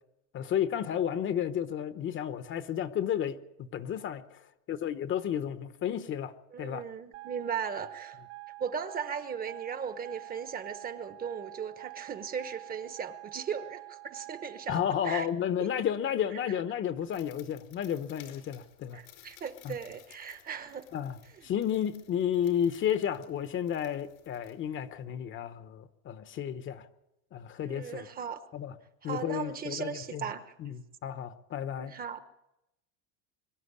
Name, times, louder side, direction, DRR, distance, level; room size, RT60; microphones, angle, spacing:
voice 1, 0.3-4.4 4.7-6.3 6.6-6.8 14.7-19.0 19.6-19.8 20.9-21.2 21.4-26.9 27.3-28.1 28.5-28.7 29.0-30.2 30.6-31.9, left 9 dB, 30° left, 11 dB, 1.0 m, -32 dB
voice 2, 6.5-8.2 8.6-15.3 15.6-15.7 18.9-20.8 21.4-21.5 27.6-28.4 29.0-30.5 31.8-32.2, right 7 dB, 20° right, 10 dB, 1.1 m, -37 dB
sound 1, 7.1-14.7, right 22 dB, 65° right, 1.3 m, -47 dB
sound 2, 17.0-25.0, left 12 dB, 90° left, 5.0 m, -58 dB
24.0 x 12.5 x 9.7 m, 0.89 s
cardioid pair, 155°, 40 cm